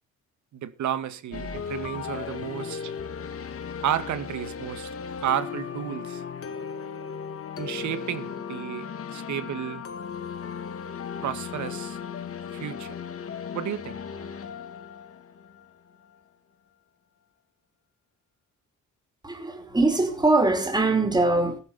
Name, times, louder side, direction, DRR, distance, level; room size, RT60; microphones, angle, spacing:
voice 1, 0.5-2.9 3.8-4.9 5.2-6.2 7.6-9.8 11.2-12.0 12.5-13.0 13.5-14.0, right 10 dB, 70° right, 1.9 m, -32 dB
sound 1, 1.3-16.2, left 6 dB, 50° left, 2.3 m, -36 dB
voice 2, 19.2-21.6, right 2 dB, 15° right, 5.3 m, -22 dB
15.0 x 12.0 x 4.3 m
cardioid pair, 90°, 30 cm